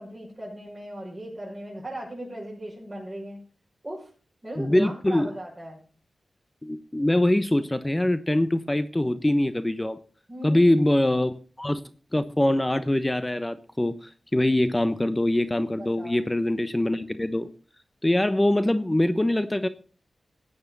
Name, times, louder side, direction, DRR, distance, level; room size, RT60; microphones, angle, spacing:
voice 1, 0.0-3.4 3.8-4.1 4.4-5.8 10.3-10.9 15.8-16.2, right 1 dB, 20° right, -6 dB, 6.4 m, -38 dB
voice 2, 4.6-5.3 6.6-10.0 10.4-11.8 12.1-17.5 18.0-19.7, left 1 dB, 15° left, 12 dB, 1.0 m, -23 dB
15.0 x 9.4 x 4.0 m, 0.39 s
cardioid pair, 65°, 0 cm